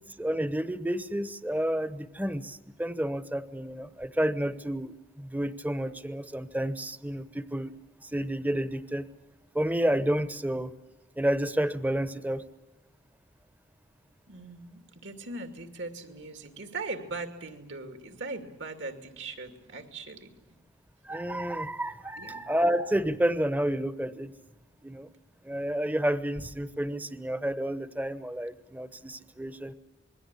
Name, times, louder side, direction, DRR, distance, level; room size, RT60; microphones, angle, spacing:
voice 1, 0.2-7.7 8.0-9.1 9.5-10.7 11.2-12.5 21.1-24.3 24.8-25.1 25.4-29.7, right 1 dB, 10° right, 13 dB, 1.0 m, -30 dB
voice 2, 14.3-20.3 22.2-22.4, right 3 dB, 70° right, 6 dB, 2.7 m, -40 dB
27.0 x 21.5 x 8.3 m, 0.87 s
head